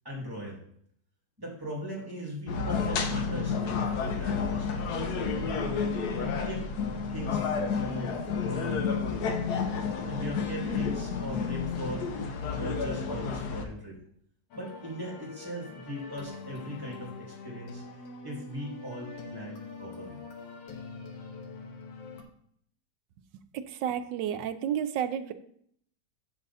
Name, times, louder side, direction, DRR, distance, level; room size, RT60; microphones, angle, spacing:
voice 1, 0.0-0.6 1.4-5.6 6.2-6.6 7.1-8.9 10.1-14.0 14.5-17.8 18.2-20.2 20.5-21.4, equal, 10° right, -4 dB, 2.2 m, -39 dB
sound 1, 2.5-13.6, left 5 dB, 65° left, 1.3 m, -30 dB
sound 2, 14.5-22.2, left 3 dB, 85° left, 1.6 m, -44 dB
voice 2, 23.7-25.3, right 9 dB, 80° right, 11 dB, 1.2 m, -31 dB
6.5 x 6.4 x 4.1 m, 0.67 s
omnidirectional pair, 1.9 m